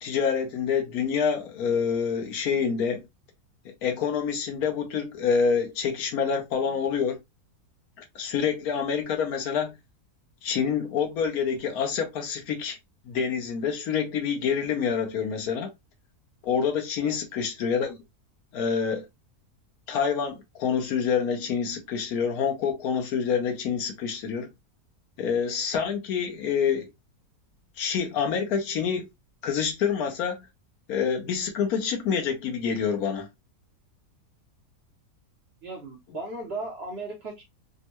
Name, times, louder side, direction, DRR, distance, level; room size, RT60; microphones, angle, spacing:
voice 1, 0.0-3.0 3.6-7.2 8.0-9.7 10.4-12.8 13.1-15.7 16.4-18.0 18.5-19.1 19.9-24.5 25.2-26.9 27.8-29.1 29.4-30.4 30.9-33.3, left 6 dB, 70° left, 1.2 m, -27 dB
voice 2, 35.6-37.4, right 2 dB, 50° right, 0.8 m, -36 dB
3.5 x 2.1 x 2.9 m
omnidirectional pair, 1.7 m